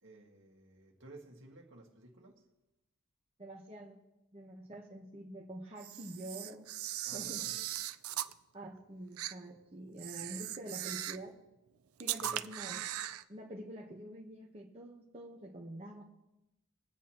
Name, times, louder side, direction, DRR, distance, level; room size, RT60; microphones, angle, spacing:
voice 1, 0.0-2.4 7.0-7.6 12.2-12.5, right 2 dB, 60° right, 1.9 m, -55 dB
voice 2, 3.4-4.0 4.3-6.7 7.1-7.4 8.5-11.3 12.0-12.9 13.3-16.0, right 1 dB, 30° right, 1.1 m, -46 dB
Camera, 5.8-8.3 9.2-9.3 10.0-11.3 12.0-13.2, right 12 dB, 75° right, 0.5 m, -39 dB
23.0 x 8.3 x 2.9 m
head